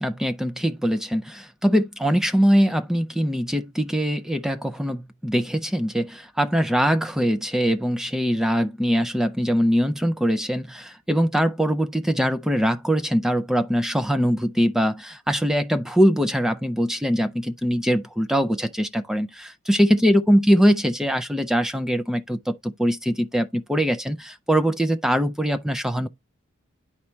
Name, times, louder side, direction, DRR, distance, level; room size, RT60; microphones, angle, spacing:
voice 1, 0.0-26.1, equal, ahead, 0.3 m, -22 dB
10.5 x 4.2 x 3.2 m
head